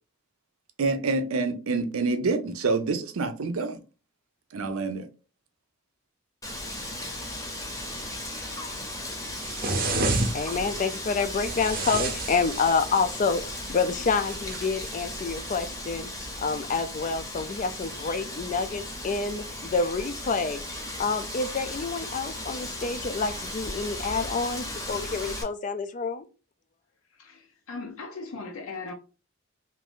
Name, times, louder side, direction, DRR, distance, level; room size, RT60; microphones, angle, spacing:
voice 1, 0.8-3.8 4.5-5.1, right 3 dB, 85° right, 0.5 m, -27 dB
Wind, 6.4-25.4, left 1 dB, 15° left, 0.7 m, -36 dB
sound 1, 9.4-10.7 11.4-13.2 14.3-15.0, right 2 dB, 45° right, 0.6 m, -30 dB
voice 2, 10.3-13.4 13.7-16.1 16.4-20.6 21.0-26.2, left 4 dB, 35° left, 0.3 m, -28 dB
voice 3, 27.2-28.9, left 3 dB, 85° left, 0.6 m, -38 dB
2.7 x 2.5 x 3.4 m
head